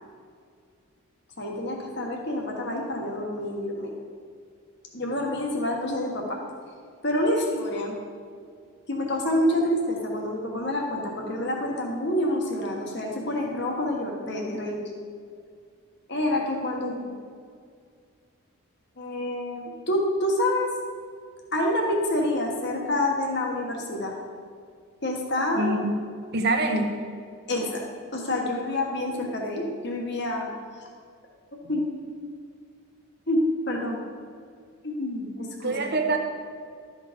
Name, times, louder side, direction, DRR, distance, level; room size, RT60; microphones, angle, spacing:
voice 1, 1.4-3.9 4.9-6.4 7.0-8.0 8.9-14.8 16.1-17.1 19.0-20.7 21.5-24.1 25.0-25.8 27.5-27.8 28.1-30.5 31.5-31.9 33.3-34.0 34.8-36.0, left 1 dB, 50° left, 0 dB, 1.5 m, -27 dB
voice 2, 25.6-26.0 26.3-27.0 35.6-36.2, right 2 dB, 50° right, 2 dB, 0.9 m, -25 dB
12.5 x 5.1 x 5.1 m, 2.2 s
head